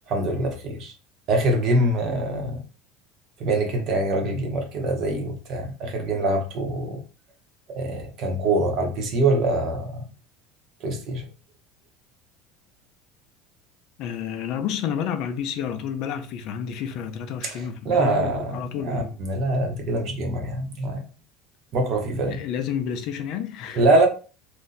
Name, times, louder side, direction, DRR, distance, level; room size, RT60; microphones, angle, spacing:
voice 1, 0.1-0.9 1.3-2.6 3.4-7.0 7.8-10.1 10.8-11.2 17.4-21.0 21.7-22.4 23.7-24.1, right 2 dB, 45° right, 0.8 m, -24 dB
voice 2, 14.0-19.2 22.3-23.9, left 8 dB, 55° left, 0.4 m, -30 dB
2.6 x 2.1 x 3.8 m
cardioid pair, 150°, 0 cm